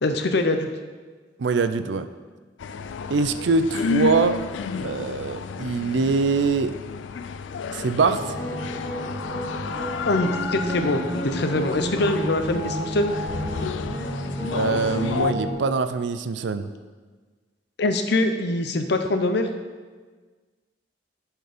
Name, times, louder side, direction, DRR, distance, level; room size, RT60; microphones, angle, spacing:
voice 1, 0.0-0.7 10.1-13.1 17.8-19.5, left 2 dB, 65° left, 7 dB, 0.7 m, -23 dB
voice 2, 1.4-2.1 3.1-4.4 4.8-6.7 7.7-8.2 14.5-16.7, right 4 dB, 70° right, 11 dB, 0.5 m, -23 dB
sound 1, 2.6-15.3, left 5 dB, 90° left, 0.4 m, -31 dB
sound 2, 8.1-15.5, equal, 25° left, 2.6 m, -31 dB
10.0 x 4.6 x 5.0 m, 1.4 s
head